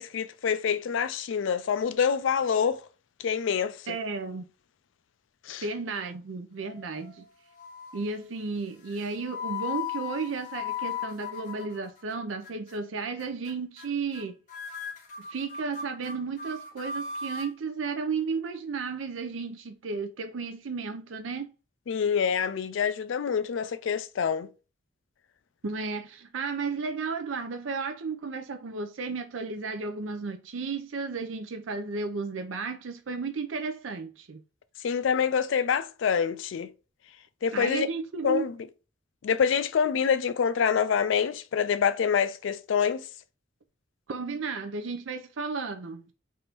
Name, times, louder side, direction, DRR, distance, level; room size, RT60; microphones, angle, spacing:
voice 1, 0.0-2.8 3.2-4.0 5.5-5.6 21.9-24.5 34.8-36.7 37.4-37.9 38.2-38.5 39.2-43.1, left 7 dB, 75° left, 0.4 m, -26 dB
voice 2, 3.9-4.4 5.6-7.2 7.9-14.4 15.2-21.5 25.6-34.4 37.5-38.4 44.1-46.1, right 4 dB, 85° right, 0.5 m, -33 dB
sound 1, 6.6-7.2 7.6-8.1 8.8-12.1 12.4-12.8 13.2-13.5 13.8-14.2 14.5-17.5, left 7 dB, 40° left, 1.0 m, -37 dB
3.5 x 2.6 x 4.3 m
head